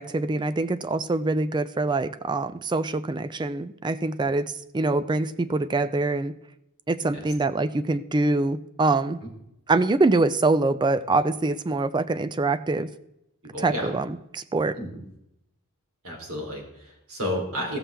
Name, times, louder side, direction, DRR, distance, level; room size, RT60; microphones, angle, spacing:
voice 1, 0.0-6.3 6.9-9.2 9.7-12.9 13.6-14.7, right 2 dB, 20° right, 14 dB, 0.4 m, -24 dB
voice 2, 13.5-13.9 14.8-14.9 16.0-17.8, equal, 85° right, 0 dB, 3.2 m, -31 dB
14.5 x 7.4 x 3.4 m, 0.84 s
head